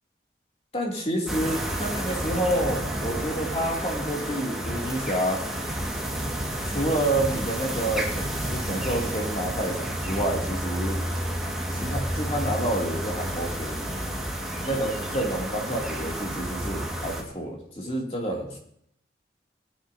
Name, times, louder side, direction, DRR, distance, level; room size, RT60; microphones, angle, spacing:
voice 1, 0.7-5.4 6.7-11.0 11.7-13.8 14.6-18.6, right 1 dB, 35° left, -1 dB, 2.7 m, -29 dB
sound 1, 1.3-17.2, right 1 dB, ahead, 1.8 m, -30 dB
18.0 x 9.6 x 2.8 m, 0.71 s
head